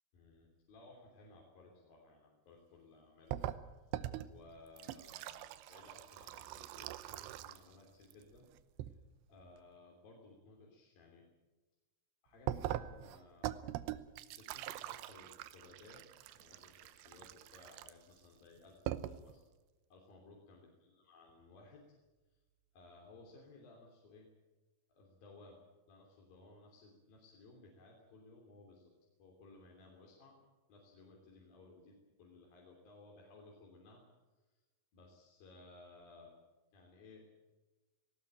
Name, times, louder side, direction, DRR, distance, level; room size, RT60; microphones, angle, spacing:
voice 1, 0.1-3.4 3.8-4.0 4.3-8.5 8.8-9.0 9.3-11.3 12.2-13.5 14.3-16.1 16.3-19.4 19.9-21.9 22.3-22.4 22.7-24.3 24.9-25.6 25.9-28.9 29.2-30.4 30.7-34.0 34.9-36.3 36.7-37.3, left 3 dB, 60° left, -1 dB, 4.8 m, -59 dB
sound 1, 3.3-7.8 8.0-8.9 12.5-18.2 18.6-18.7 18.9-19.4, right 13 dB, 85° right, 3.0 m, -43 dB
19.5 x 18.5 x 9.0 m, 1.2 s
omnidirectional pair, 4.9 m